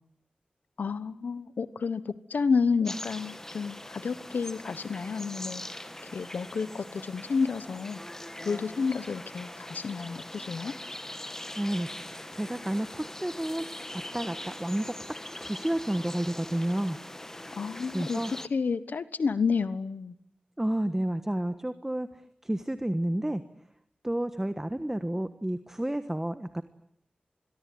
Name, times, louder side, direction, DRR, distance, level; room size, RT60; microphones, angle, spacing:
voice 1, 0.8-5.6 6.1-8.0 8.4-10.7 17.5-18.2 18.5-20.1, left 5 dB, 85° left, 14 dB, 1.2 m, -30 dB
sound 1, 2.8-18.5, left 1 dB, 15° left, 1.6 m, -42 dB
voice 2, 11.6-13.6 14.1-14.8 15.4-17.0 17.9-18.3 20.6-22.1 22.4-23.4 24.0-26.6, right 1 dB, 10° right, 10 dB, 1.4 m, -30 dB
26.5 x 22.5 x 9.5 m, 0.71 s
wide cardioid pair, 80°, 3 cm